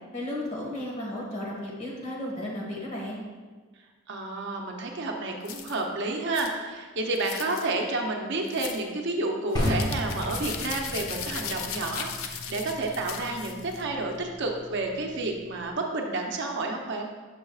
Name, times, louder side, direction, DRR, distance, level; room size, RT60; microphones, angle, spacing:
voice 1, 0.1-3.2, left 1 dB, 35° left, -4 dB, 1.6 m, -34 dB
voice 2, 4.1-17.1, right 2 dB, 60° right, 2 dB, 0.7 m, -30 dB
sound 1, 5.4-5.8 6.3-6.5 7.1-7.7 8.5-8.8 9.5-13.8, left 7 dB, 80° left, 0.5 m, -37 dB
sound 2, 9.6-15.7, left 1 dB, 20° left, 0.8 m, -35 dB
6.7 x 6.1 x 2.4 m, 1.4 s
head